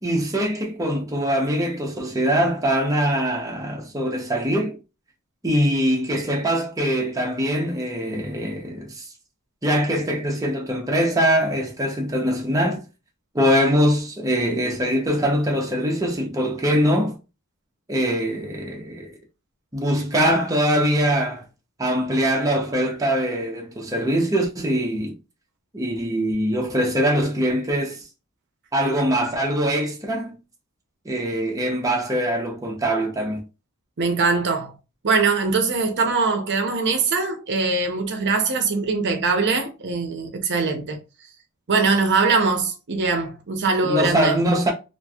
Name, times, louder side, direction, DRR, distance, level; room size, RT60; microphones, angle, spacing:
voice 1, 0.0-4.8 5.4-9.1 9.6-12.8 13.3-17.2 17.9-19.2 19.7-21.4 21.8-25.2 25.7-28.1 28.7-30.4 31.0-33.4 43.8-44.7, equal, 15° right, 0.7 m, -22 dB
voice 2, 34.0-34.7 35.0-41.0 41.7-44.4, right 4 dB, 55° right, 0.6 m, -22 dB
3.0 x 2.5 x 2.3 m
head